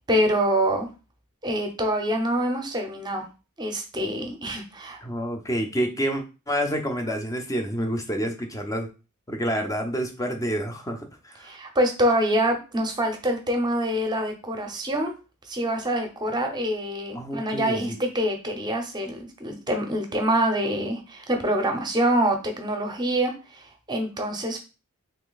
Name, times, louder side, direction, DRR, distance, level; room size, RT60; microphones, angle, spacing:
voice 1, 0.1-0.9 1.4-3.2 3.6-5.0 11.4-15.1 15.5-24.6, right 1 dB, 20° right, 4 dB, 0.7 m, -25 dB
voice 2, 5.0-8.9 9.3-11.5 17.1-18.0, equal, 15° left, 4 dB, 0.6 m, -28 dB
3.3 x 2.8 x 3.9 m, 0.32 s
head